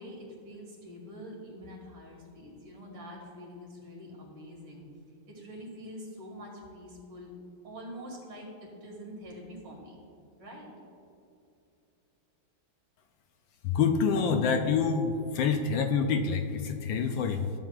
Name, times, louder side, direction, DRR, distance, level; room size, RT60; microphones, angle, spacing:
voice 1, 0.0-4.9 5.3-7.3 7.6-10.0 10.4-10.7, equal, 85° right, -2 dB, 2.8 m, -45 dB
voice 2, 13.6-17.5, left 5 dB, 75° left, 6 dB, 1.2 m, -27 dB
13.5 x 7.5 x 2.4 m, 2.7 s
omnidirectional pair, 2.3 m